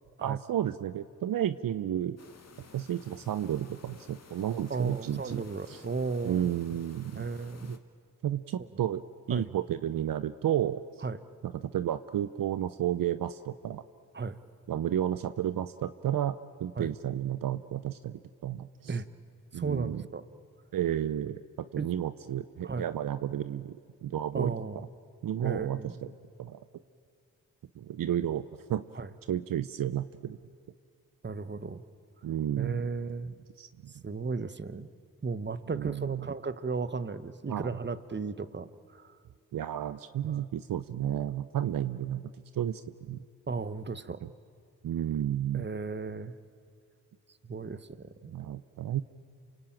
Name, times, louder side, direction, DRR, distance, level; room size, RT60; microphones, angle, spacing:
voice 1, 0.2-2.2 2.7-5.8 6.2-7.3 7.6-7.8 8.2-9.0 9.3-10.8 11.4-13.8 14.7-19.0 19.5-20.0 20.7-21.4 21.7-23.8 24.0-24.5 25.2-26.1 26.4-26.6 27.8-28.8 29.3-30.4 32.2-32.8 33.6-33.9 35.7-36.3 37.5-37.8 39.5-43.2 44.2-44.3 44.8-45.7 48.3-49.0, right 11 dB, 65° right, 13 dB, 0.7 m, -32 dB
sound 1, 2.2-7.8, left 4 dB, 45° left, 2.1 m, -54 dB
voice 2, 4.7-6.5 7.2-7.8 9.3-9.5 11.0-11.2 14.1-14.4 16.8-16.9 18.9-19.1 19.5-20.2 21.8-21.9 22.6-22.8 24.3-24.8 25.4-26.0 29.0-29.1 31.2-31.8 32.6-33.3 34.0-34.9 35.2-39.1 40.2-40.5 43.5-44.2 45.5-46.3 47.4-48.3, right 4 dB, 30° right, 13 dB, 1.2 m, -35 dB
27.5 x 24.0 x 9.0 m, 2.2 s
supercardioid pair, 50°, 36 cm